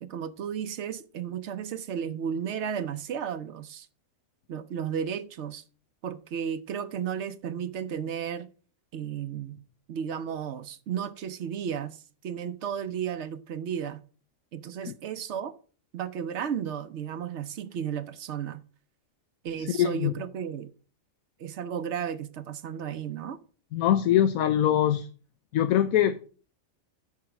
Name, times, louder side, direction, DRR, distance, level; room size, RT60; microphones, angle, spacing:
voice 1, 0.0-3.9 4.5-5.6 6.0-8.5 8.9-9.6 9.9-14.0 14.5-15.5 15.9-18.6 19.4-20.7 21.4-23.4, right 8 dB, 60° right, 0.9 m, -33 dB
voice 2, 19.8-20.1 23.7-25.1 25.5-26.3, left 11 dB, 85° left, 1.1 m, -23 dB
7.1 x 5.8 x 5.8 m
omnidirectional pair, 1.4 m